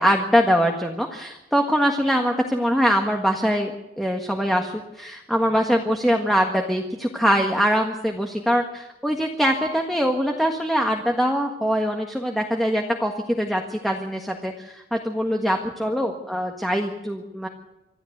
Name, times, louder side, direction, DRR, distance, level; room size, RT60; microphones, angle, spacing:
voice 1, 0.0-3.7 4.0-17.5, equal, ahead, 2 dB, 1.7 m, -23 dB
26.0 x 13.5 x 8.1 m, 0.94 s
head